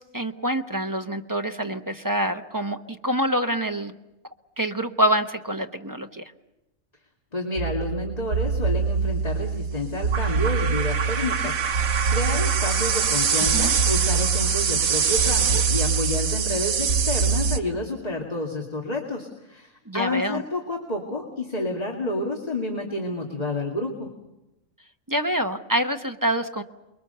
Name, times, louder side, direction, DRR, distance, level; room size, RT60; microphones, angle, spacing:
voice 1, 0.0-3.9 4.6-6.3 13.4-13.7 19.9-20.4 25.1-26.6, equal, 15° right, 5 dB, 0.9 m, -26 dB
voice 2, 7.3-24.1, left 2 dB, 30° left, 0 dB, 2.4 m, -30 dB
sound 1, 7.6-17.6, right 6 dB, 80° right, 1.6 m, -23 dB
29.0 x 22.5 x 6.8 m, 0.97 s
omnidirectional pair, 1.4 m